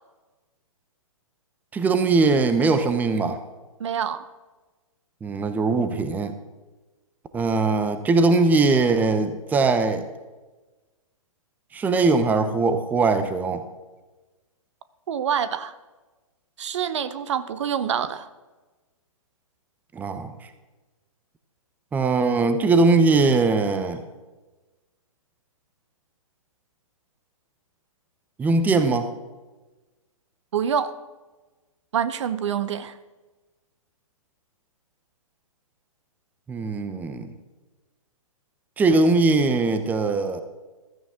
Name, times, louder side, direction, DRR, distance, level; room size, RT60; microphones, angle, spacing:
voice 1, 1.7-3.4 5.2-6.3 7.3-10.1 11.7-13.6 19.9-20.3 21.9-24.0 28.4-29.1 36.5-37.3 38.8-40.4, right 3 dB, 10° right, 10 dB, 0.8 m, -21 dB
voice 2, 3.8-4.3 15.1-15.7 16.6-18.3 30.5-30.9 31.9-33.0, right 8 dB, 55° right, 14 dB, 0.9 m, -26 dB
15.5 x 13.5 x 3.7 m, 1.2 s
figure-of-eight pair, 130°, 18 cm